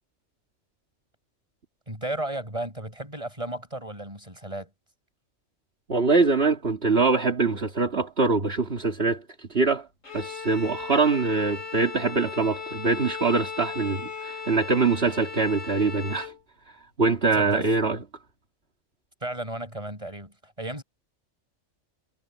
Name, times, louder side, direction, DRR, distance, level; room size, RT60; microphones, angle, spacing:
voice 1, 1.9-4.7 17.4-17.7 19.2-20.8, right 1 dB, 25° right, 7.3 m, -34 dB
voice 2, 5.9-9.9 10.1-16.3 16.7-18.0, right 4 dB, 50° right, 2.6 m, -24 dB
Bowed string instrument, 10.0-16.4, left 5 dB, 80° left, 5.0 m, -37 dB
omnidirectional pair, 1.3 m